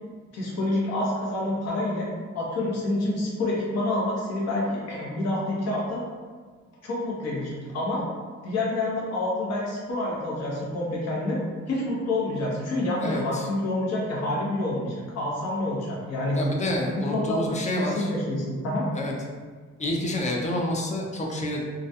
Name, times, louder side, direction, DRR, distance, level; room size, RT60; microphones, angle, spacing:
voice 1, 0.3-2.1 2.3-6.0 6.8-8.0 8.4-11.4 11.7-16.4 17.1-17.4 17.8-18.9, left 1 dB, 55° left, -5 dB, 0.9 m, -28 dB
voice 2, 13.0-13.5 16.3-18.1 18.9-19.1 19.8-21.6, left 1 dB, 25° left, -1 dB, 0.4 m, -28 dB
2.4 x 2.2 x 2.6 m, 1.5 s
cardioid pair, 90°, 30 cm